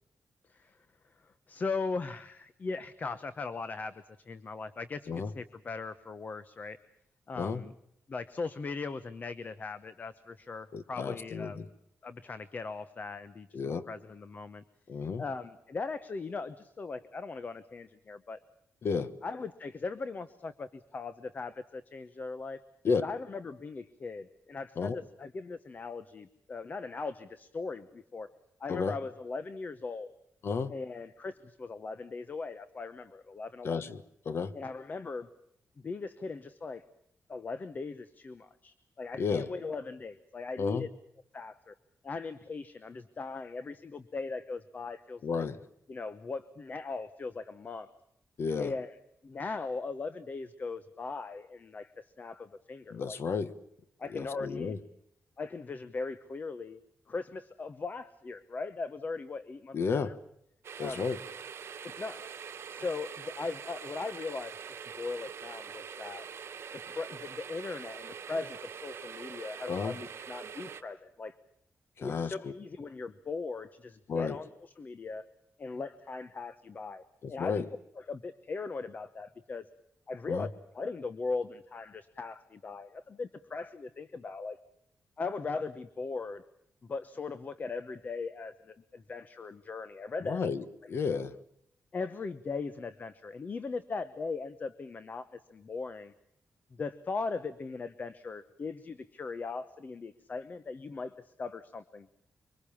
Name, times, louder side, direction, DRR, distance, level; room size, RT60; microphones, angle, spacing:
voice 1, 1.2-3.9 4.3-6.8 7.3-7.7 8.1-11.7 12.0-14.6 15.2-18.4 19.2-22.6 23.0-28.3 28.6-30.1 30.7-33.8 34.5-35.3 35.8-36.8 37.3-40.9 41.3-41.7 42.0-45.5 45.9-47.9 48.6-48.9 49.2-53.2 54.0-54.8 55.4-56.8 57.1-60.1 60.8-61.1 61.8-62.2 62.7-66.3 66.7-71.4 72.0-74.5 74.8-75.2 75.6-77.0 77.3-77.6 78.0-79.6 80.1-80.5 80.7-84.6 85.2-86.4 86.8-90.5 91.9-96.1 96.7-102.1, left 4 dB, 35° left, 13 dB, 0.9 m, -39 dB
voice 2, 10.7-11.7 13.5-13.9 14.9-15.2 18.8-19.1 22.8-23.0 24.8-25.0 28.7-28.9 30.4-30.7 33.6-34.5 39.2-39.5 40.6-40.9 45.2-45.6 48.4-48.7 52.9-53.5 54.1-54.8 59.7-60.2 60.8-61.2 69.7-70.0 72.0-72.5 74.1-74.4 77.2-77.6 80.3-80.5 90.2-91.3, left 5 dB, 55° left, 14 dB, 1.3 m, -32 dB
sound 1, 60.6-70.8, right 7 dB, 55° right, 1.8 m, -44 dB
25.0 x 24.5 x 7.2 m, 0.74 s
wide cardioid pair, 155°, 5 cm